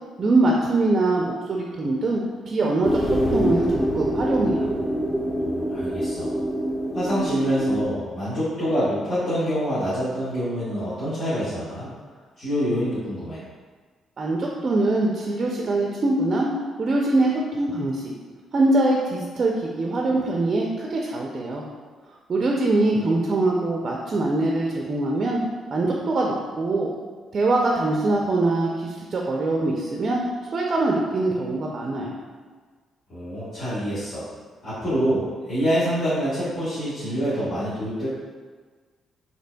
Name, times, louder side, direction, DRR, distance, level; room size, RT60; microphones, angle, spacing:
voice 1, 0.2-3.0 3.3-4.7 14.2-16.5 16.8-18.1 18.5-21.6 22.3-25.4 25.7-26.9 27.3-30.2 30.5-32.2, right 2 dB, 45° right, -1 dB, 0.4 m, -23 dB
sound 1, 2.8-7.8, equal, 25° left, 0.6 m, -25 dB
voice 2, 5.4-6.3 6.9-11.9 12.4-13.4 33.1-34.2 34.6-38.1, equal, 60° left, -14 dB, 1.3 m, -26 dB
4.2 x 2.8 x 2.2 m, 1.5 s
cardioid pair, 90°, 0 cm